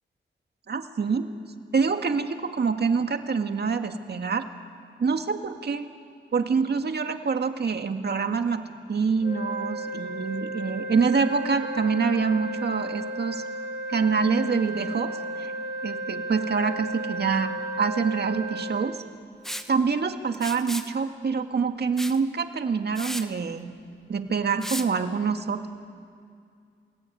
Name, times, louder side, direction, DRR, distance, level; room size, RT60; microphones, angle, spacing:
voice 1, 0.7-1.3 1.7-4.4 5.0-5.9 6.3-8.6 8.9-13.4 13.9-15.1 15.4-15.5 15.8-19.0 19.7-23.7 24.1-25.6, right 5 dB, 55° right, 6 dB, 1.9 m, -26 dB
sound 1, 9.2-18.9, right 1 dB, 65° left, 4.8 m, -34 dB
Liquid, 19.4-19.7 20.3-20.9 22.0-22.2 22.6-22.7 23.0-23.3 24.6-24.9, equal, ahead, 1.5 m, -34 dB
29.0 x 20.5 x 9.3 m, 2.2 s
cardioid pair, 80°, 20 cm